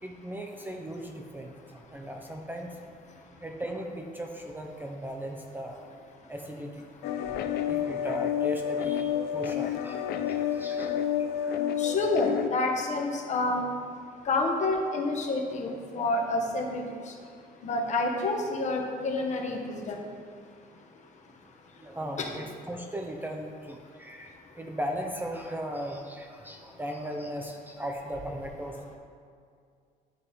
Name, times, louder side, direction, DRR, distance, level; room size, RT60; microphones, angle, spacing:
voice 1, 0.0-2.8 3.4-5.9 6.3-7.4 7.7-11.6 21.8-29.0, equal, 10° right, 2 dB, 0.5 m, -38 dB
sound 1, 7.0-12.5, left 9 dB, 70° left, 0.4 m, -29 dB
voice 2, 11.8-13.6 14.2-16.8 17.6-20.0 22.2-22.3, left 2 dB, 45° left, 1 dB, 1.0 m, -28 dB
10.0 x 3.5 x 4.2 m, 2.2 s
cardioid pair, 110°, 17 cm